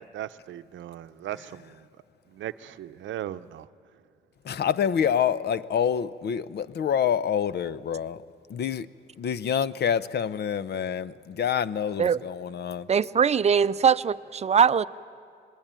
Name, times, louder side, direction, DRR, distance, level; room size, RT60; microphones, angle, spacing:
voice 1, 0.0-1.9 2.3-3.7, right 12 dB, 70° right, 0.7 m, -38 dB
voice 2, 4.4-8.2 8.5-8.9 9.2-12.9, left 8 dB, 55° left, 0.8 m, -27 dB
voice 3, 12.9-14.9, right 7 dB, 35° right, 0.6 m, -21 dB
26.0 x 20.5 x 8.9 m
cardioid pair, 90°, 20 cm